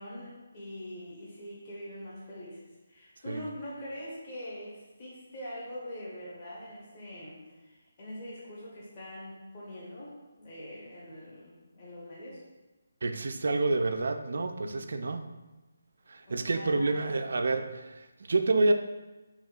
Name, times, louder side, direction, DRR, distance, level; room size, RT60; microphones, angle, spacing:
voice 1, 0.0-12.4 14.6-14.9 16.2-17.2, left 1 dB, 35° left, -7 dB, 1.1 m, -43 dB
voice 2, 13.0-15.3 16.1-18.7, right 3 dB, 65° right, 7 dB, 0.3 m, -28 dB
3.5 x 2.9 x 4.0 m, 1.1 s
figure-of-eight pair, 150°, 0 cm